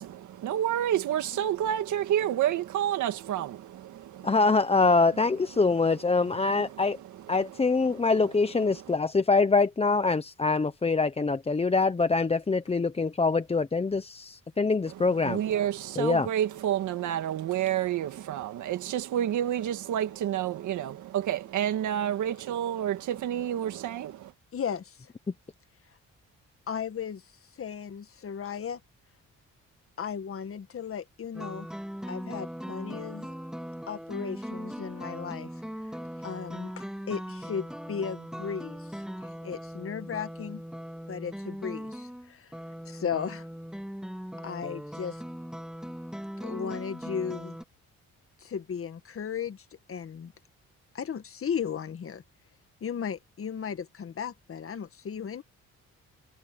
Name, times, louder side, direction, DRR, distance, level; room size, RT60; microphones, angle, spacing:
voice 1, 0.0-4.4 6.2-8.1 8.7-9.0 14.9-24.3, right 11 dB, 75° right, 1.9 m, -30 dB
voice 2, 4.2-7.0 7.3-15.4 16.0-16.3, left 4 dB, 20° left, 0.9 m, -24 dB
voice 3, 24.5-24.9 26.7-27.2 27.6-28.8 30.0-31.7 32.1-33.3 33.9-35.5 36.2-38.8 39.2-40.6 41.1-42.5 42.9-43.4 44.4-45.2 46.4-47.6 48.4-50.3 50.9-52.2 52.8-55.4, left 7 dB, 45° left, 1.8 m, -35 dB
sound 1, 31.3-47.6, equal, ahead, 3.1 m, -39 dB
cardioid pair, 90°, 30 cm